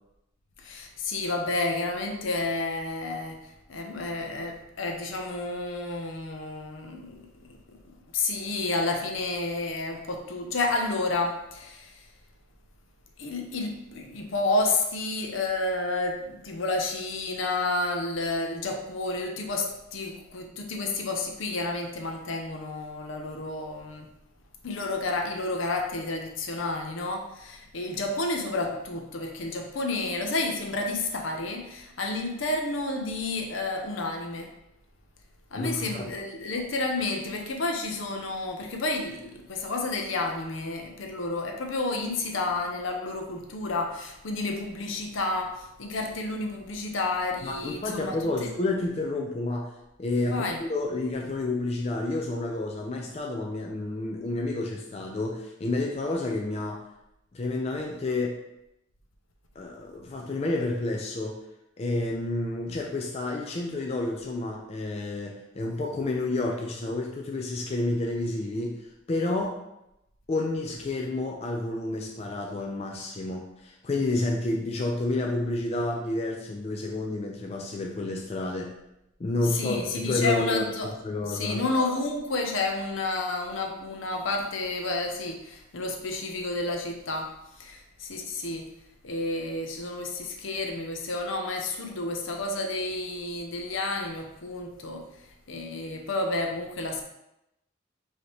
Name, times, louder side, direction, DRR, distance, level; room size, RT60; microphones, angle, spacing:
voice 1, 0.6-12.1 13.2-24.1 24.6-34.5 35.5-48.2 50.3-50.6 79.4-80.9 81.3-88.7 89.0-97.0, left 2 dB, 70° left, 3 dB, 0.7 m, -30 dB
voice 2, 35.5-36.0 47.4-49.7 50.0-56.8 57.3-58.4 59.6-61.4 61.8-69.6 70.3-78.7 79.2-81.6, left 2 dB, 30° left, 0 dB, 0.3 m, -30 dB
4.8 x 2.8 x 3.1 m, 0.87 s
head